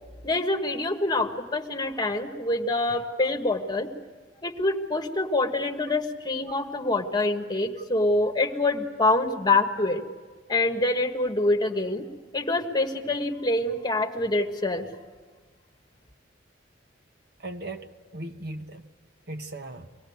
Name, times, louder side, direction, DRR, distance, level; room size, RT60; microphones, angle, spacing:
voice 1, 0.2-3.9 4.4-10.0 10.5-12.1 12.3-14.8, left 2 dB, 20° left, 4 dB, 1.5 m, -25 dB
voice 2, 17.4-18.9 19.3-19.9, right 2 dB, 60° right, 6 dB, 1.3 m, -38 dB
24.0 x 18.0 x 9.5 m, 1.4 s
head